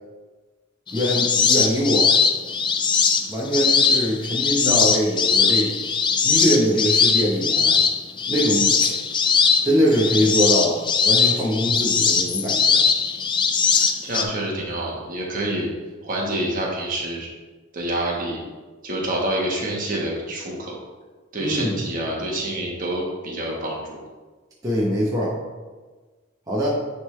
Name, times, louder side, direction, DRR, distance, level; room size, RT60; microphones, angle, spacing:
sound 1, 0.9-14.2, left 5 dB, 20° left, 0.3 m, -20 dB
voice 1, 0.9-2.1 3.3-5.7 6.2-7.8 8.3-8.8 9.6-12.8 21.4-21.8 24.6-25.4 26.5-26.7, equal, 15° right, -6 dB, 0.9 m, -22 dB
voice 2, 14.0-15.7 16.0-17.3 17.7-18.4 18.8-20.7 21.3-24.0, right 1 dB, 40° right, -2 dB, 1.3 m, -27 dB
9.5 x 3.7 x 3.3 m, 1.3 s
head